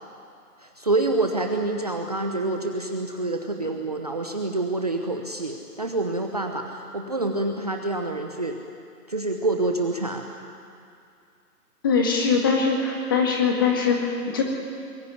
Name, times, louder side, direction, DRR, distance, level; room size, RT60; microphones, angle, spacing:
voice 1, 0.6-8.6 9.1-10.2, right 2 dB, 25° right, 3 dB, 1.0 m, -27 dB
voice 2, 11.8-14.4, left 5 dB, 15° left, 1 dB, 1.9 m, -22 dB
26.5 x 21.5 x 9.5 m, 2.4 s
hypercardioid pair, 170°, 47 cm